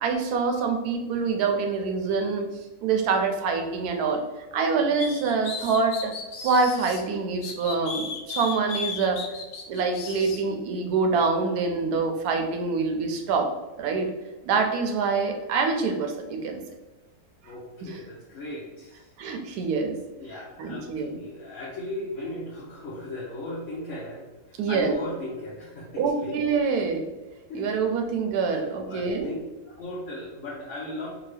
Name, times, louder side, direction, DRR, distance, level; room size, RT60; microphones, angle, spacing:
voice 1, 0.0-2.5 2.8-4.2 4.5-6.1 6.4-9.2 9.7-13.5 13.8-14.1 14.4-16.6 17.8-18.0 19.2-20.0 20.6-21.2 24.6-24.9 26.0-27.1 27.5-29.3, right 4 dB, 75° right, 4 dB, 1.1 m, -25 dB
sound 1, 5.0-7.0 7.4-10.4, left 5 dB, 90° left, 1.2 m, -35 dB
voice 2, 17.4-19.1 20.2-26.4 27.5-27.7 28.5-29.4 29.6-31.1, left 1 dB, 60° left, -6 dB, 1.0 m, -37 dB
3.7 x 2.3 x 3.2 m, 1.2 s
omnidirectional pair, 1.7 m